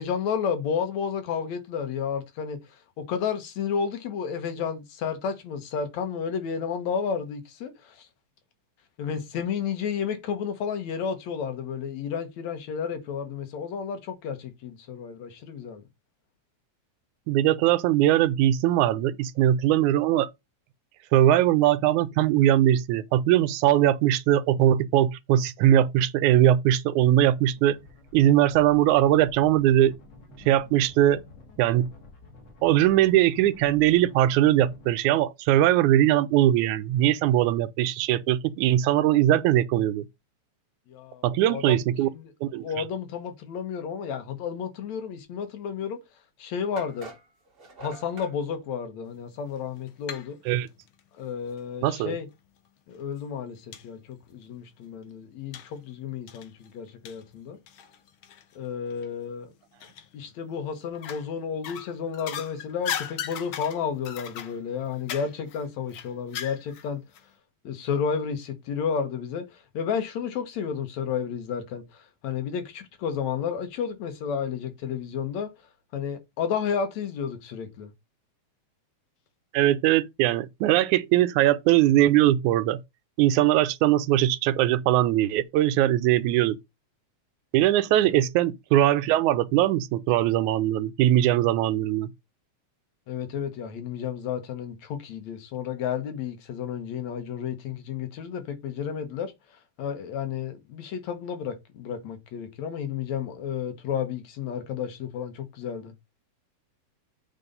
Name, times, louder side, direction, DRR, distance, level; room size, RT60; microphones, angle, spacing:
voice 1, 0.0-2.6 3.0-8.1 9.0-15.8 40.9-42.3 42.6-46.0 46.4-47.1 47.8-50.4 51.2-52.3 52.9-57.6 58.6-59.5 60.1-67.0 67.6-69.4 69.7-71.8 72.2-75.5 75.9-77.9 88.0-88.1 93.1-99.3 99.8-105.9, left 7 dB, 70° left, 2.4 m, -32 dB
voice 2, 17.3-20.3 21.1-27.8 28.1-30.0 30.5-31.2 31.6-31.9 32.6-40.1 41.2-42.1 42.4-42.8 50.5-50.7 51.8-52.2 79.5-82.8 83.2-86.6 87.5-92.1, right 13 dB, 80° right, 2.0 m, -21 dB
sound 1, 27.6-34.9, left 3 dB, 45° left, 3.2 m, -49 dB
sound 2, 45.9-46.0 46.8-48.4, right 3 dB, 35° right, 0.9 m, -45 dB
sound 3, 49.6-50.3 50.6-51.7 52.5-52.6 53.0-53.1 53.7-53.9 54.2-54.3 55.5-55.8 56.3-58.6 58.9-59.1 59.8-60.4 60.9-61.3 61.6-66.9 67.1-67.2, left 9 dB, 90° left, 1.1 m, -38 dB
8.3 x 4.1 x 5.3 m
omnidirectional pair, 3.5 m